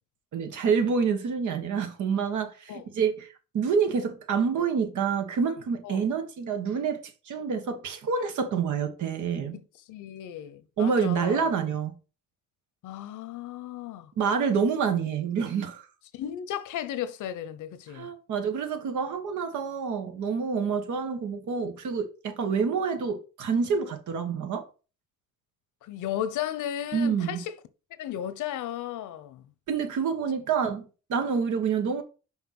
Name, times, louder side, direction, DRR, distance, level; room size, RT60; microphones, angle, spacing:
voice 1, 0.3-9.6 10.8-11.9 14.2-15.9 17.9-24.7 26.9-27.4 29.7-32.0, right 6 dB, 75° right, 1.7 m, -27 dB
voice 2, 9.5-11.5 12.8-14.1 16.1-18.1 25.8-27.6 28.0-29.4, left 11 dB, 80° left, 1.0 m, -35 dB
5.7 x 5.5 x 6.0 m
cardioid pair, 90°, 30 cm